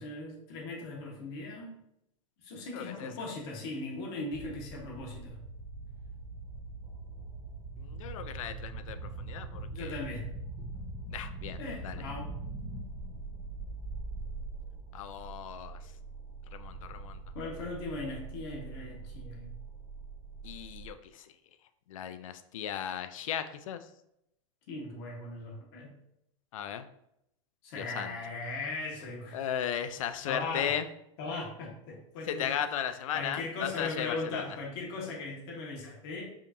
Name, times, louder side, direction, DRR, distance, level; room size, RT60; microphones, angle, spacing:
voice 1, 0.0-1.7 2.4-5.4 9.7-10.3 11.6-12.3 17.3-19.5 24.7-25.9 27.6-29.4 30.2-30.7 31.2-32.6 33.1-36.3, left 3 dB, 55° left, -2 dB, 1.3 m, -38 dB
voice 2, 2.7-3.1 7.8-10.0 11.1-12.0 14.9-15.8 16.5-17.2 20.4-21.3 21.9-23.9 26.5-26.8 27.7-28.1 29.3-30.9 32.3-34.4, left 9 dB, 80° left, 10 dB, 0.4 m, -36 dB
sound 1, 4.3-20.9, right 3 dB, 5° right, 0.7 m, -42 dB
4.9 x 2.7 x 2.6 m, 0.77 s
supercardioid pair, 145°, 17 cm